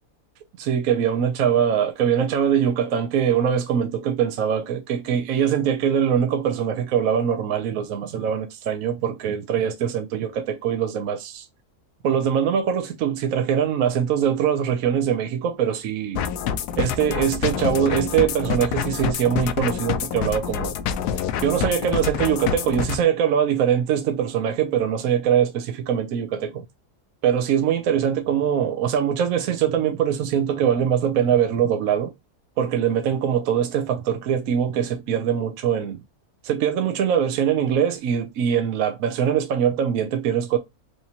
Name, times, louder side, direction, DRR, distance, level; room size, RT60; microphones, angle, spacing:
voice 1, 0.6-11.5 12.0-16.2 16.8-20.7 21.4-26.6 27.2-32.1 32.6-36.0 36.4-40.6, right 8 dB, 70° right, 1.0 m, -22 dB
sound 1, 16.1-23.0, left 8 dB, 80° left, 1.1 m, -27 dB
4.8 x 2.9 x 2.7 m
omnidirectional pair, 1.7 m